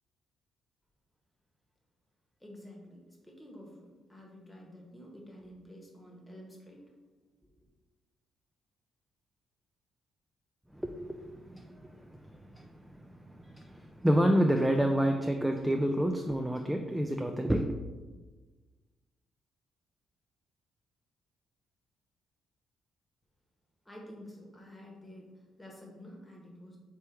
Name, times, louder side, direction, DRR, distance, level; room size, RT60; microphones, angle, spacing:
voice 1, 2.4-6.9 23.8-26.8, equal, 10° left, -1 dB, 1.1 m, -50 dB
voice 2, 10.7-17.7, equal, 5° right, 4 dB, 0.3 m, -29 dB
3.3 x 3.1 x 4.4 m, 1.3 s
cardioid pair, 90°, 0 cm